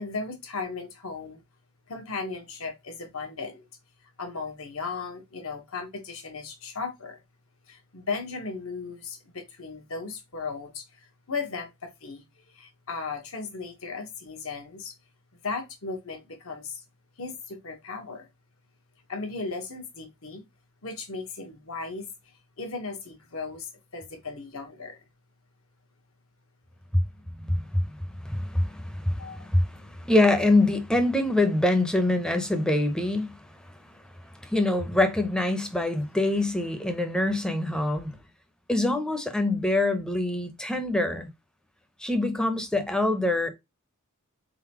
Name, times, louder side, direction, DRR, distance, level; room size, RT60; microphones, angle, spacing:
voice 1, 0.0-1.4 1.9-3.6 4.2-7.2 7.7-10.9 11.3-12.2 12.5-14.9 15.4-16.8 17.2-18.3 19.1-20.4 20.8-22.1 22.6-25.0 29.2-29.5, left 4 dB, 70° left, 1.3 m, -36 dB
voice 2, 27.4-28.0 28.2-33.5 34.4-38.2 38.7-41.3 42.0-43.5, left 2 dB, 5° left, 0.7 m, -25 dB
3.9 x 3.9 x 2.9 m
head